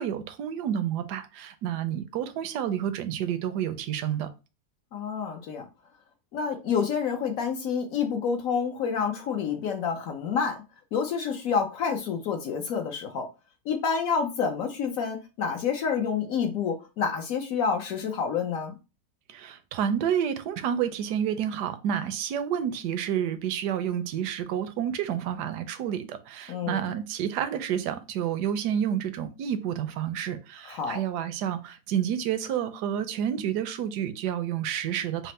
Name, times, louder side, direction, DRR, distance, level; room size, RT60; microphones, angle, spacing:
voice 1, 0.0-4.3 19.3-35.3, right 9 dB, 80° right, 1.1 m, -29 dB
voice 2, 4.9-5.7 6.3-10.6 10.9-13.3 13.6-18.8 26.5-26.8 30.7-31.0, left 6 dB, 65° left, 0.9 m, -28 dB
4.2 x 2.1 x 4.1 m
omnidirectional pair, 1.8 m